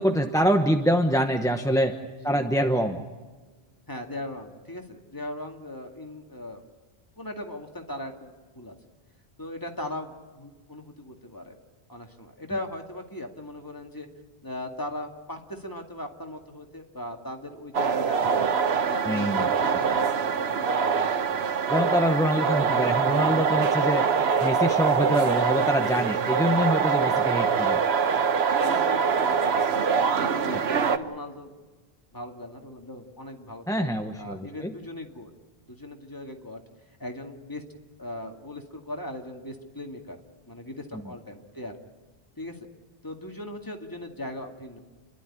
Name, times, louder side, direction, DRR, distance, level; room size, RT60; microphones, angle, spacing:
voice 1, 0.0-1.9 2.2-3.0 19.1-19.5 21.7-24.1 24.4-27.8 30.5-30.6 33.7-34.7, equal, 5° left, 5 dB, 1.0 m, -25 dB
voice 2, 3.9-6.6 7.2-8.8 9.4-11.5 11.9-14.1 14.4-18.5 18.8-21.6 22.2-23.2 24.9-25.0 27.0-27.2 28.6-29.6 29.9-31.5 32.1-33.9 34.2-35.3 35.7-36.6 37.0-37.6 38.0-40.2 40.5-41.7 42.4-42.6 43.0-44.8, left 1 dB, 20° left, 2 dB, 2.2 m, -38 dB
sound 1, 17.7-31.0, right 6 dB, 90° right, 1.2 m, -24 dB
29.0 x 12.0 x 10.0 m, 1.3 s
omnidirectional pair, 1.0 m